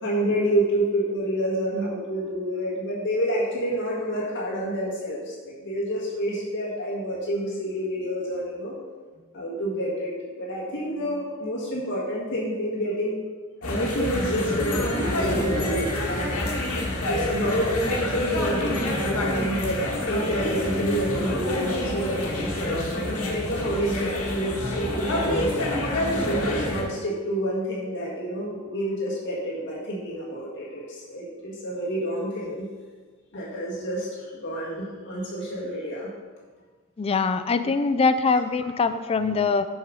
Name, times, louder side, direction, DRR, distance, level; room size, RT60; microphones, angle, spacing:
voice 1, 0.0-8.7 9.3-13.2 13.6-16.5 17.1-25.5 26.1-32.7 33.3-36.1, equal, 55° left, -6 dB, 1.8 m, -28 dB
sound 1, 13.6-26.8, left 1 dB, 80° left, 1.7 m, -27 dB
voice 2, 37.0-39.7, left 4 dB, 25° left, 11 dB, 0.3 m, -23 dB
7.1 x 5.3 x 6.3 m, 1.5 s
head